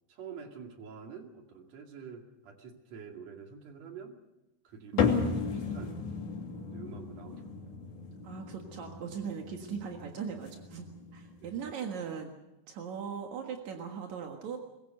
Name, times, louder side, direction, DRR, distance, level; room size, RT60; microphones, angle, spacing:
voice 1, 0.1-4.2 4.6-6.1 6.7-7.6 11.4-11.7, right 6 dB, 45° right, 3 dB, 2.7 m, -47 dB
voice 2, 4.9-5.4 8.2-12.3 12.7-14.6, right 7 dB, 60° right, 2 dB, 2.0 m, -39 dB
sound 1, 5.0-11.7, left 6 dB, 55° left, 4.2 m, -35 dB
23.0 x 22.0 x 6.7 m, 0.98 s
omnidirectional pair, 5.6 m